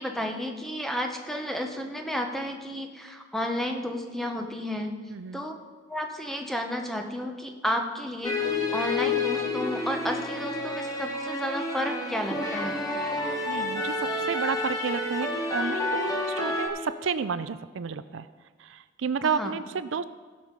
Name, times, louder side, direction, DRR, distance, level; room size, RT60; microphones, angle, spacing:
voice 1, 0.0-4.9 5.3-5.5 5.9-12.8 19.2-19.5, equal, ahead, 3 dB, 0.9 m, -32 dB
voice 2, 5.1-5.4 13.5-18.3 18.6-20.0, right 6 dB, 70° right, 13 dB, 0.4 m, -31 dB
sound 1, 8.2-16.7, left 2 dB, 20° left, 1.6 m, -29 dB
16.0 x 5.5 x 6.6 m, 1.4 s
head